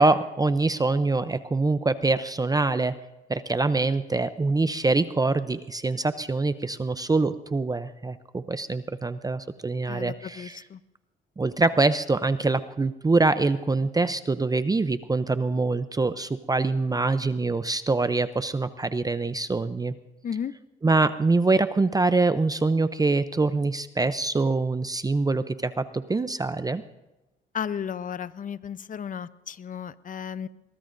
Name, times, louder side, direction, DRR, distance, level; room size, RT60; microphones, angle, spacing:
voice 1, 0.0-3.0 3.3-10.6 11.4-19.9 20.8-26.8, right 3 dB, 20° right, 12 dB, 0.5 m, -24 dB
voice 2, 9.9-10.8 20.2-20.5 27.5-30.5, left 8 dB, 40° left, 15 dB, 0.7 m, -34 dB
22.5 x 21.0 x 2.6 m, 1.0 s
cardioid pair, 90°, 20 cm